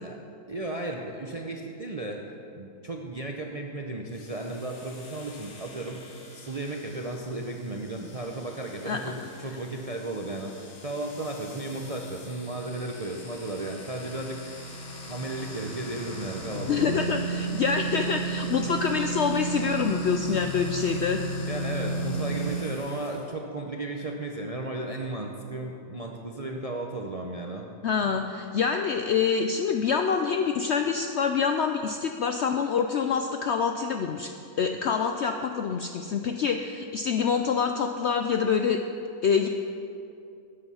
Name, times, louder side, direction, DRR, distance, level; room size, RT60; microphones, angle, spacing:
voice 1, 0.5-2.2 2.5-14.6 15.1-17.2 17.5-17.6 21.5-27.7, right 2 dB, 40° right, 1 dB, 0.5 m, -35 dB
sound 1, 4.1-23.2, right 3 dB, 50° left, 1.5 m, -36 dB
voice 2, 16.7-21.2 27.8-34.3 34.6-38.8 39.2-39.5, left 6 dB, 70° left, 6 dB, 0.6 m, -26 dB
12.5 x 8.7 x 5.6 m, 2.6 s
omnidirectional pair, 1.6 m